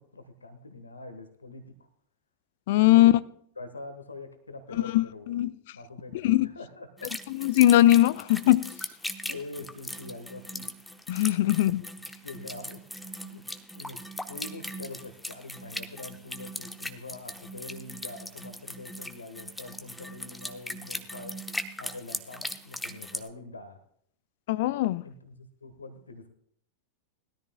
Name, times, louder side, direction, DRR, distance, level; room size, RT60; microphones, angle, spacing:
voice 1, 0.0-1.6 2.7-3.1 3.6-5.3 5.7-7.1 9.3-10.7 11.4-11.5 12.2-12.9 13.2-13.4 13.8-21.4 21.8-23.8 25.0-26.3, left 2 dB, 75° left, 1.3 m, -44 dB
voice 2, 2.7-3.2 4.9-5.5 6.2-6.5 7.4-8.7 11.1-11.8 24.5-25.0, left 15 dB, 50° left, 0.4 m, -20 dB
sound 1, 7.0-23.3, left 1 dB, 5° left, 0.8 m, -39 dB
20.5 x 13.5 x 2.3 m
figure-of-eight pair, 90°, 0 cm